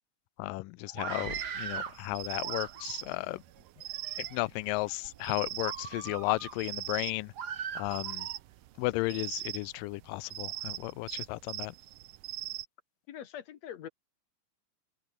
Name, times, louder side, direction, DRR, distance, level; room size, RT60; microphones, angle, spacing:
voice 1, 0.4-3.4 4.2-7.3 7.7-8.3 8.8-11.8, left 21 dB, 90° left, 2.3 m, -34 dB
Screaming, 0.9-2.0 2.4-3.1 3.8-4.4 4.9-5.1 5.6-6.6 7.4-8.4, right 7 dB, 45° right, 1.4 m, -39 dB
sound 1, 1.3-12.7, right 16 dB, 85° right, 2.6 m, -41 dB
voice 2, 13.1-13.9, left 10 dB, 60° left, 2.2 m, -43 dB
open air
omnidirectional pair, 3.8 m